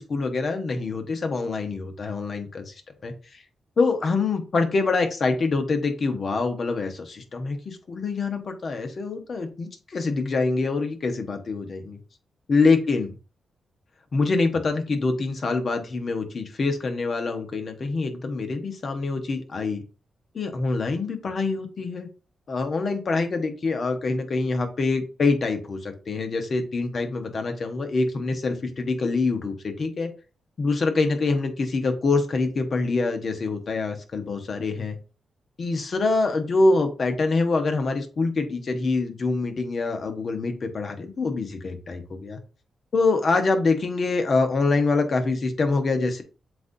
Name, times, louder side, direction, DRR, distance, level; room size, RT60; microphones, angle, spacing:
voice 1, 0.0-2.7 3.0-3.4 3.8-12.0 12.5-13.1 14.1-19.8 20.3-22.1 22.5-30.1 30.6-35.0 35.6-42.4 42.9-46.2, left 3 dB, 55° left, 6 dB, 1.0 m, -25 dB
7.6 x 2.6 x 2.7 m, 0.35 s
cardioid pair, 55°, 0 cm